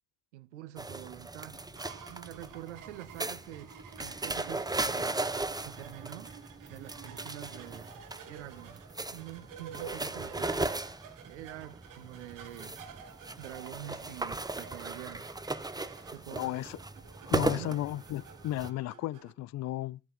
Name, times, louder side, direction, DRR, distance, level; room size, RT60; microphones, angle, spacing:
voice 1, 0.3-1.6 2.1-3.7 4.0-5.2 5.6-6.3 6.7-7.9 8.3-8.8 9.1-10.8 11.2-12.8 13.4-15.3 16.1-16.5 17.6-17.8, right 14 dB, 90° right, 0.6 m, -46 dB
sound 1, 0.8-18.7, right 2 dB, 10° right, 0.9 m, -37 dB
sound 2, 1.5-19.3, right 8 dB, 65° right, 1.6 m, -51 dB
voice 2, 16.3-16.8 17.3-20.0, left 15 dB, 50° left, 0.4 m, -34 dB
13.5 x 6.8 x 4.1 m
hypercardioid pair, 45°, 34 cm